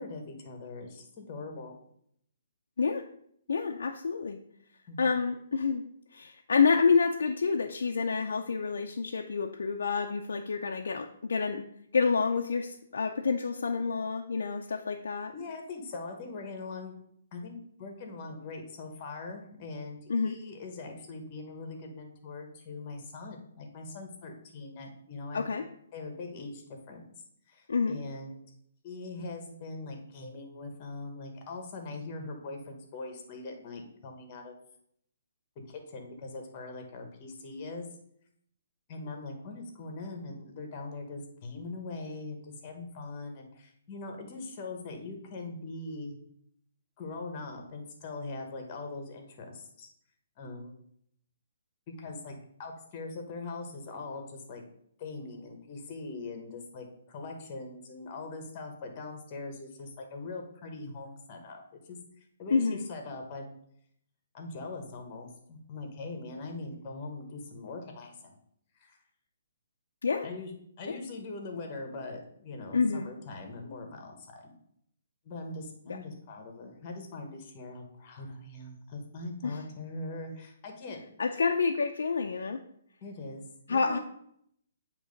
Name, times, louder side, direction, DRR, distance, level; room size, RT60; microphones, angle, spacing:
voice 1, 0.0-1.7 4.9-5.0 15.3-17.0 17.3-25.5 25.9-27.1 27.5-28.4 28.8-34.5 35.7-37.9 38.9-46.1 47.0-49.9 50.4-50.7 51.9-54.6 55.0-61.6 61.9-62.0 62.4-63.5 64.3-68.4 68.8-69.0 70.2-74.5 75.2-81.0 83.0-83.4 83.7-84.0, left 3 dB, 25° left, 4 dB, 1.1 m, -41 dB
voice 2, 3.5-4.4 5.0-5.8 6.1-11.7 11.9-15.3 20.1-20.4 25.3-25.7 27.7-28.0 62.5-62.9 70.0-70.3 70.9-71.0 72.7-73.1 75.9-76.0 79.4-79.6 81.2-82.6 83.7-84.0, left 5 dB, 85° left, 3 dB, 0.5 m, -28 dB
8.7 x 3.0 x 5.2 m, 0.70 s
hypercardioid pair, 175°, 0 cm